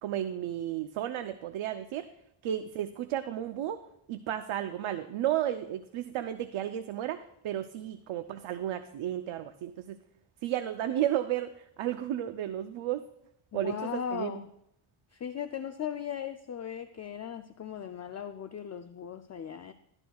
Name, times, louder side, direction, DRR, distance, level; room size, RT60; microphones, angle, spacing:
voice 1, 0.0-2.1 2.4-3.8 4.1-10.0 10.4-11.5 11.8-13.0 13.5-14.4, right 11 dB, 85° right, 9 dB, 0.7 m, -33 dB
voice 2, 13.5-14.5 15.1-19.7, left 8 dB, 35° left, 9 dB, 0.4 m, -38 dB
13.0 x 11.5 x 2.3 m, 0.76 s
cardioid pair, 110°, 47 cm